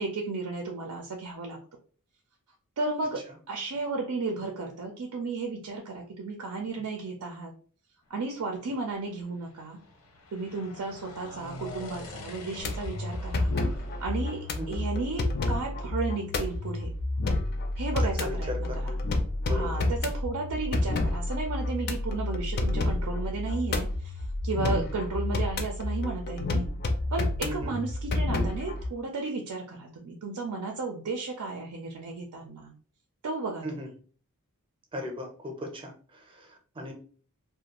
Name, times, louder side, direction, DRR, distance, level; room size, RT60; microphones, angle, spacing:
voice 1, 0.0-1.6 2.8-7.5 8.1-9.8 10.3-13.5 14.0-16.9 17.8-18.9 19.5-24.1 24.4-26.6 27.1-32.7 33.2-33.6, right 3 dB, 90° right, 2 dB, 0.5 m, -34 dB
sound 1, 8.3-15.7, left 2 dB, 85° left, 0.7 m, -46 dB
sound 2, 12.6-28.9, left 2 dB, 45° left, 0.4 m, -30 dB
voice 2, 18.0-18.9 19.5-19.9 24.9-25.0 27.4-27.8 33.6-33.9 34.9-36.9, equal, 25° right, 3 dB, 0.6 m, -37 dB
2.4 x 2.2 x 2.9 m, 0.42 s
head